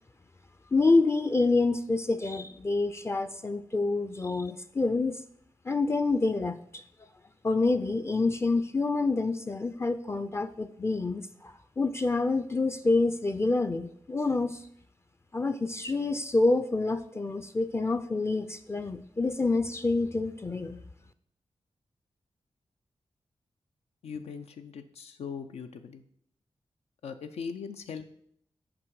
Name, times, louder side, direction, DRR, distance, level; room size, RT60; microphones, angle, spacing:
voice 1, 0.7-5.2 5.7-6.8 7.4-14.6 15.3-20.8, left 3 dB, 25° left, 10 dB, 0.4 m, -27 dB
voice 2, 24.0-26.0 27.0-28.0, left 6 dB, 85° left, 7 dB, 0.5 m, -40 dB
6.0 x 4.9 x 4.7 m, 0.68 s
cardioid pair, 70°, 10 cm